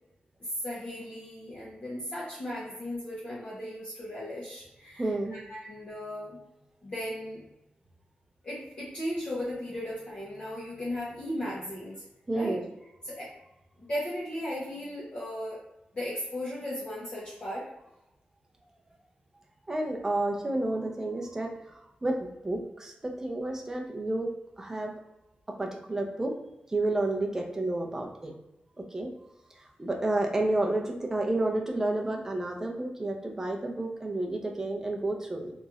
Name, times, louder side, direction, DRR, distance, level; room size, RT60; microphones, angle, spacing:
voice 1, 0.4-6.4 6.8-7.4 8.4-12.0 12.3-12.6 13.0-13.3 13.9-15.6 15.9-17.7, left 1 dB, 40° left, -7 dB, 0.8 m, -36 dB
voice 2, 5.0-5.4 12.3-12.7 19.7-24.3 24.6-24.9 25.6-26.3 26.7-28.3 28.9-29.1 29.6-35.5, right 2 dB, 15° right, 1 dB, 0.5 m, -30 dB
4.0 x 3.0 x 2.4 m, 0.89 s
wide cardioid pair, 160°, 3 cm